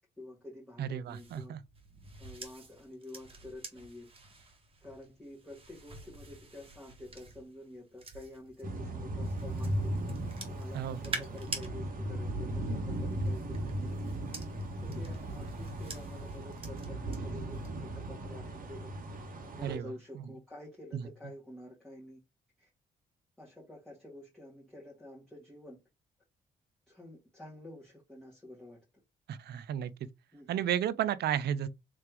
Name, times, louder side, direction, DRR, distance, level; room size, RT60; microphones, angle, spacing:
voice 1, 0.2-1.5 2.2-4.1 4.8-9.9 10.5-14.0 14.8-18.9 19.6-22.2 22.6-22.7 23.4-25.8 26.9-28.8 30.3-30.5, left 1 dB, 5° left, 1.8 m, -49 dB
voice 2, 0.8-1.6 10.7-11.2 19.6-19.8 20.9-21.0 29.3-29.9 30.5-31.7, right 10 dB, 65° right, 0.5 m, -33 dB
sound 1, 1.1-8.6 9.2-11.7 12.9-17.2 17.5-17.9, right 3 dB, 30° right, 1.6 m, -47 dB
sound 2, 8.6-19.8, right 1 dB, 50° right, 1.4 m, -37 dB
3.3 x 3.2 x 3.3 m
supercardioid pair, 55°, 18 cm